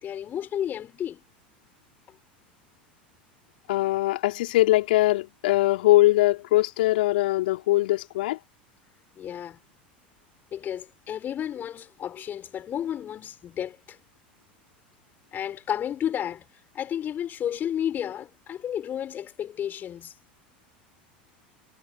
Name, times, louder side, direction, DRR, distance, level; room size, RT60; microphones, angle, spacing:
voice 1, 0.0-1.2 9.1-9.6 10.5-14.0 15.3-16.4 16.7-20.1, left 10 dB, 35° left, 5.1 m, -32 dB
voice 2, 3.7-8.4, left 17 dB, 65° left, 3.4 m, -21 dB
hypercardioid pair, 80°, 5 cm